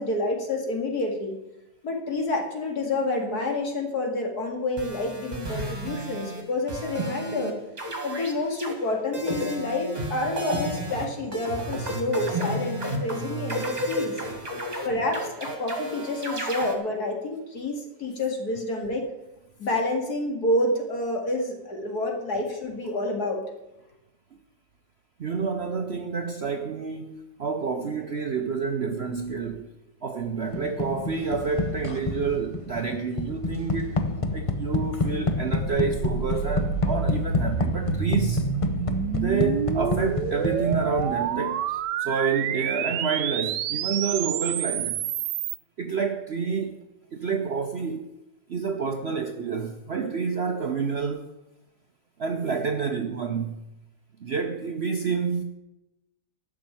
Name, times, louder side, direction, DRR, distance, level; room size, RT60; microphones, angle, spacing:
voice 1, 0.0-1.3 1.8-7.5 8.0-14.2 14.8-19.1 19.6-23.4, left 2 dB, 60° left, 2.6 m, -28 dB
sound 1, 4.8-6.4 6.7-7.5 7.8-8.7 9.1-16.8, right 1 dB, 25° right, 2.1 m, -32 dB
voice 2, 25.2-29.7 30.0-34.0 34.3-38.5 39.2-45.0 45.8-46.8 47.1-48.1 48.5-51.3 52.2-53.7 54.2-55.4, right 5 dB, 50° right, 0.8 m, -28 dB
sound 2, 30.5-41.4, left 3 dB, 45° left, 0.4 m, -29 dB
sound 3, 35.6-45.6, right 10 dB, 80° right, 1.3 m, -29 dB
12.0 x 6.3 x 8.9 m
omnidirectional pair, 1.9 m